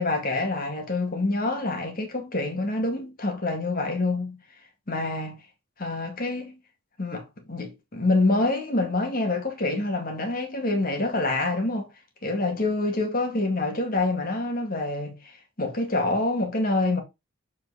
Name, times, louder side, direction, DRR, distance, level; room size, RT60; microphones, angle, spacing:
voice 1, 0.0-4.4 4.9-5.4 5.8-6.6 7.0-11.9 12.2-15.2 15.6-17.0, left 2 dB, 45° left, 2.1 m, -26 dB
7.3 x 4.6 x 4.1 m
head